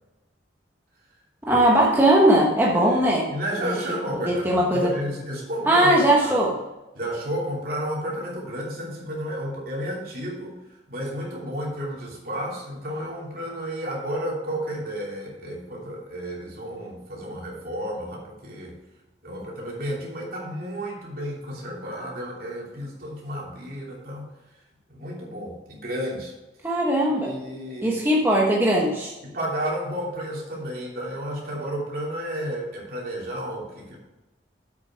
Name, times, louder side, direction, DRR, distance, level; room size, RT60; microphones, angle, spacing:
voice 1, 1.5-3.3 3.6-3.8 4.3-4.9 5.7-6.5 26.6-27.3 27.8-29.1, right 1 dB, 10° right, -3 dB, 1.2 m, -19 dB
voice 2, 2.7-6.4 6.9-18.8 19.2-24.6 24.9-26.3 27.1-28.0 29.2-34.0, equal, 55° right, -3 dB, 3.1 m, -32 dB
8.1 x 6.9 x 4.7 m, 1.0 s
head